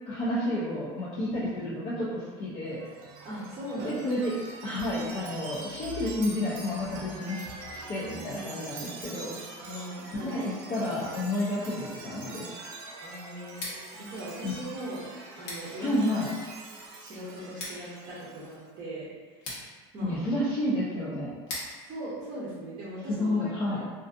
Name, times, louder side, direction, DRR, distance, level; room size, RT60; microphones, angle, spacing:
voice 1, 0.1-2.9 3.8-4.3 4.6-9.3 10.1-12.5 14.4-14.5 15.8-16.3 20.0-21.3 23.2-23.8, left 1 dB, 35° left, -8 dB, 0.5 m, -30 dB
Chime, 2.7-18.6, right 2 dB, 80° right, 0.5 m, -44 dB
voice 2, 3.2-4.0 8.0-8.4 9.6-10.3 13.0-13.6 13.9-15.1 15.4-16.0 16.7-19.4 19.9-20.2 21.7-23.8, right 1 dB, 35° right, -9 dB, 0.6 m, -40 dB
Scissors, 13.4-23.3, left 1 dB, 70° left, 0.9 m, -45 dB
2.5 x 2.4 x 2.4 m, 1.4 s
cardioid pair, 150°, 14 cm